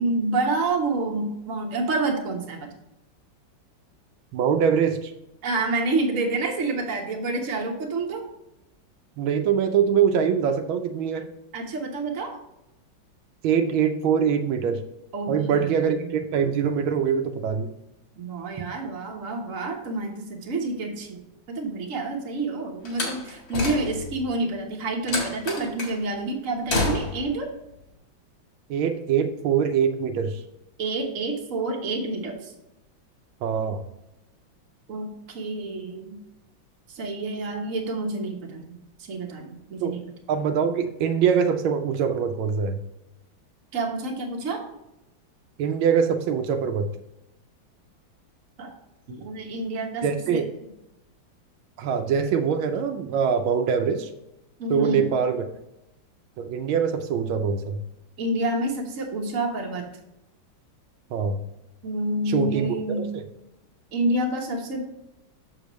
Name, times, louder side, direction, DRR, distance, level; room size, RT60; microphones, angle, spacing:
voice 1, 0.0-2.7 5.4-8.3 11.5-12.4 15.1-16.2 18.2-27.5 30.8-32.5 34.9-36.2 36.9-38.8 39.1-40.0 43.7-44.6 48.6-48.7 49.1-50.0 50.3-50.4 54.6-55.0 58.2-59.9 61.8-63.1 63.9-64.8, right 2 dB, 45° right, 1 dB, 1.4 m, -28 dB
voice 2, 4.3-5.1 9.2-11.3 13.4-14.8 15.3-17.7 28.7-30.4 33.4-33.8 39.8-39.9 40.3-42.8 45.6-46.9 50.0-50.5 51.8-54.1 54.7-55.5 56.4-57.8 61.1-61.4 62.3-62.7 63.1-63.2, right 7 dB, 85° right, 6 dB, 1.4 m, -23 dB
Slam, 22.9-24.2 25.1-26.0 26.7-27.3, left 3 dB, 70° left, 2.5 m, -28 dB
6.7 x 6.7 x 3.1 m, 0.88 s
omnidirectional pair, 2.2 m